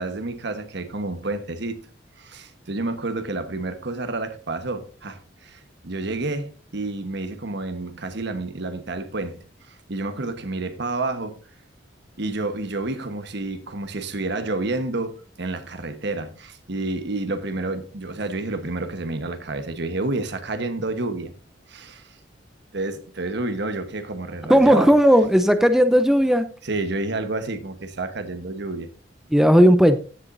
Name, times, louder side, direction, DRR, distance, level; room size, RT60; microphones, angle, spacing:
voice 1, 0.0-1.8 2.2-9.4 9.7-11.4 12.2-21.3 21.7-22.2 22.7-25.0 26.6-28.9, right 2 dB, 65° right, 1.2 m, -29 dB
voice 2, 24.5-26.5 29.3-30.0, equal, ahead, 0.5 m, -15 dB
15.5 x 7.0 x 2.6 m
head